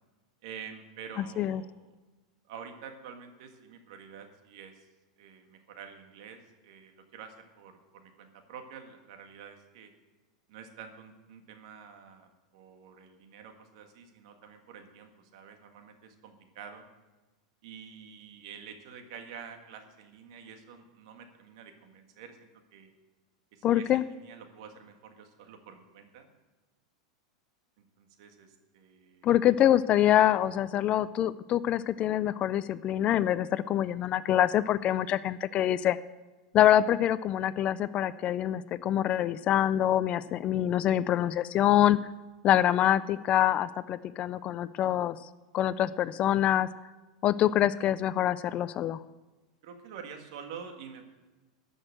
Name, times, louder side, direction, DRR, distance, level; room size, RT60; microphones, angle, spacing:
voice 1, 0.4-2.0 2.5-4.9 5.2-9.9 10.5-16.9 17.6-22.9 23.5-26.3 27.8-29.3 49.6-51.1, right 7 dB, 65° right, 5 dB, 1.9 m, -48 dB
voice 2, 1.2-1.6 23.6-24.0 29.2-36.0 36.5-42.0 42.4-45.2 45.5-46.7 47.2-49.0, left 12 dB, 35° left, 17 dB, 0.4 m, -25 dB
12.5 x 6.4 x 7.7 m, 1.2 s
supercardioid pair, 125°, 3 cm